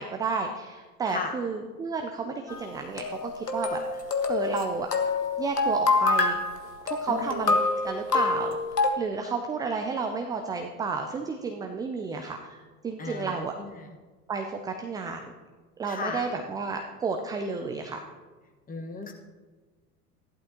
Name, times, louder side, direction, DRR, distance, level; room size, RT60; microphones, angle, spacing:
voice 1, 0.0-4.0 4.3-4.9 5.4-6.4 6.8-7.6 7.8-8.6 9.0-13.5 14.3-15.3 15.8-18.0, right 4 dB, 10° right, 4 dB, 0.4 m, -32 dB
sound 1, 2.5-8.9, left 3 dB, 85° left, 1.2 m, -26 dB
voice 2, 7.1-7.5 13.0-13.9 15.8-16.3 18.7-19.1, left 4 dB, 20° left, 3 dB, 1.5 m, -36 dB
15.0 x 11.0 x 3.0 m, 1.3 s
figure-of-eight pair, 80°, 47 cm